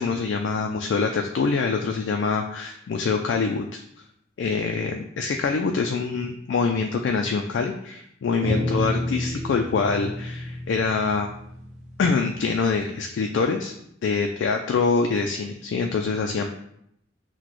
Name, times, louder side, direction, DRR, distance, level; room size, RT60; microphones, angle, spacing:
voice 1, 0.0-3.8 4.4-11.3 12.0-13.7 14.0-16.5, left 4 dB, 65° left, 3 dB, 0.3 m, -25 dB
sound 1, 8.4-12.9, left 1 dB, 35° right, 0.8 m, -30 dB
5.9 x 2.2 x 3.0 m, 0.74 s
head